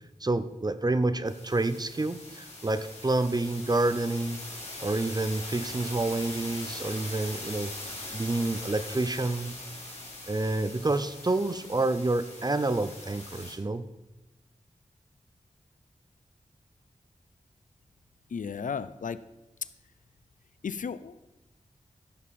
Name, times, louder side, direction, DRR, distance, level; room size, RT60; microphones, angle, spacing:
voice 1, 0.2-4.4 4.8-7.7 8.1-9.5 10.3-13.8, right 2 dB, 30° right, 13 dB, 0.6 m, -28 dB
sound 1, 1.3-13.5, left 2 dB, 55° left, 3.3 m, -41 dB
voice 2, 18.3-19.2 20.6-21.4, left 6 dB, 75° left, 15 dB, 0.5 m, -35 dB
14.5 x 7.3 x 4.3 m, 1.0 s
wide cardioid pair, 60°, 14 cm